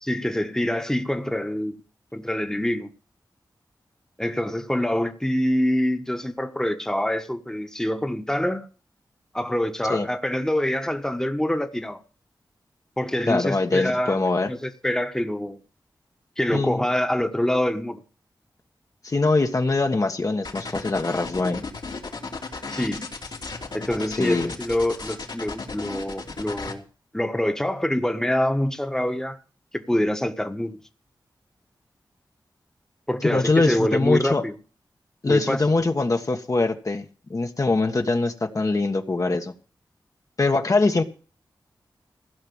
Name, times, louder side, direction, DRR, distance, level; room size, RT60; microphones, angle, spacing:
voice 1, 0.0-1.7 2.1-2.9 4.2-8.7 9.3-12.0 13.0-14.2 14.5-15.6 16.4-18.0 22.7-23.1 23.7-26.8 27.1-29.4 29.7-30.8 33.1-34.5 35.3-35.6, left 1 dB, 5° left, 1.4 m, -25 dB
voice 2, 13.3-14.5 16.5-16.8 19.0-21.6 24.2-24.5 33.2-34.4 35.2-37.0 37.3-39.5 40.4-41.0, left 3 dB, 45° left, 1.3 m, -23 dB
sound 1, 20.4-26.7, left 3 dB, 70° left, 3.0 m, -35 dB
16.0 x 5.9 x 8.7 m
cardioid pair, 50°, 8 cm